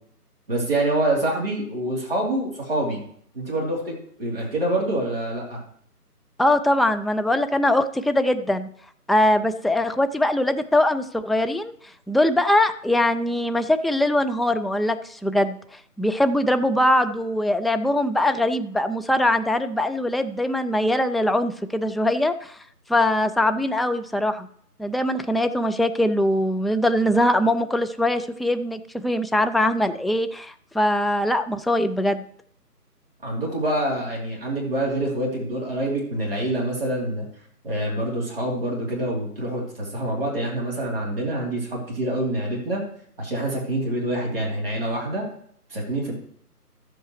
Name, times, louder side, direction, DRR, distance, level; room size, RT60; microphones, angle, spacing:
voice 1, 0.5-3.0 3.3-5.6 33.2-37.2 37.6-42.8 43.2-45.2 45.7-46.1, right 1 dB, 35° right, -3 dB, 3.1 m, -26 dB
voice 2, 6.4-8.7 9.1-11.7 12.1-22.6 22.9-24.5 24.8-32.2, left 1 dB, ahead, 8 dB, 0.3 m, -22 dB
13.0 x 8.0 x 3.1 m, 0.62 s
figure-of-eight pair, 170°, 47 cm